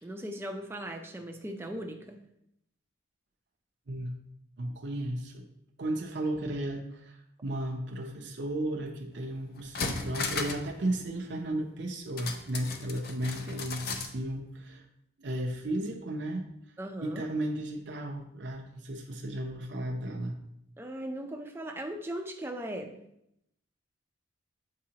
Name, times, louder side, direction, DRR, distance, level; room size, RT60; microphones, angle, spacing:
voice 1, 0.0-2.2 16.8-17.3 20.8-23.0, right 1 dB, 10° right, 4 dB, 0.5 m, -38 dB
voice 2, 4.6-5.4 5.8-14.8 15.2-16.5 17.0-20.4, right 1 dB, 60° right, 1 dB, 0.6 m, -34 dB
sound 1, 9.1-9.2 9.6-10.7 11.0-11.1 12.2-14.1 14.5-14.6, left 4 dB, 50° left, 0.6 m, -35 dB
7.4 x 4.7 x 2.9 m, 0.78 s
head